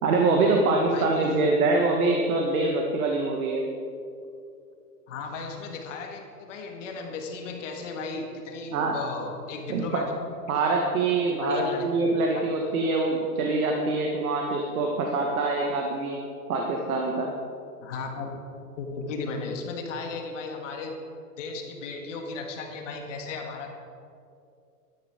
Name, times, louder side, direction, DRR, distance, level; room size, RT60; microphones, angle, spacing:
voice 1, 0.0-3.7 8.7-8.9 9.7-10.0 10.5-16.2 16.5-17.3, right 3 dB, 60° right, 1 dB, 1.6 m, -24 dB
voice 2, 0.9-1.9 5.1-10.1 10.5-10.6 11.2-12.9 17.8-18.4 18.8-21.0 21.4-23.7, left 4 dB, 50° left, 2 dB, 1.8 m, -35 dB
12.0 x 10.0 x 5.0 m, 2.5 s
hypercardioid pair, 150°, 48 cm